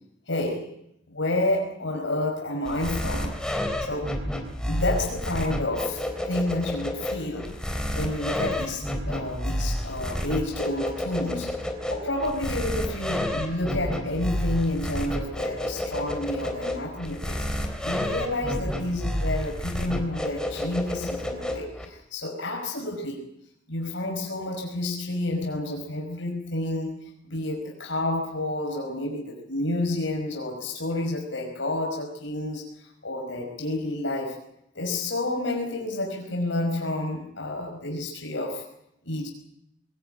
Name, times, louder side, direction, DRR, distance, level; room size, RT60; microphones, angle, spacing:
voice 1, 0.3-0.7 1.1-3.3 3.9-4.2 4.7-7.6 7.9-11.5 11.9-17.4 17.8-23.2 23.7-27.0 27.3-32.6 33.0-34.4 34.7-38.6 39.0-39.3, left 1 dB, 80° left, 0 dB, 5.5 m, -30 dB
sound 1, 2.6-21.8, equal, 5° left, 3.4 m, -30 dB
23.0 x 18.0 x 9.1 m, 0.79 s
head